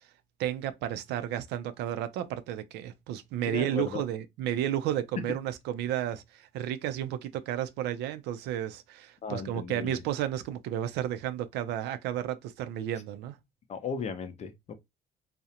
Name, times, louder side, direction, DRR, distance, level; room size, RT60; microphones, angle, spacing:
voice 1, 0.4-13.4, right 11 dB, 85° right, 0.4 m, -32 dB
voice 2, 3.5-4.0 5.3-5.4 9.2-10.0 13.7-14.7, left 6 dB, 40° left, 0.5 m, -36 dB
2.4 x 2.0 x 2.7 m
cardioid pair, 110°, 17 cm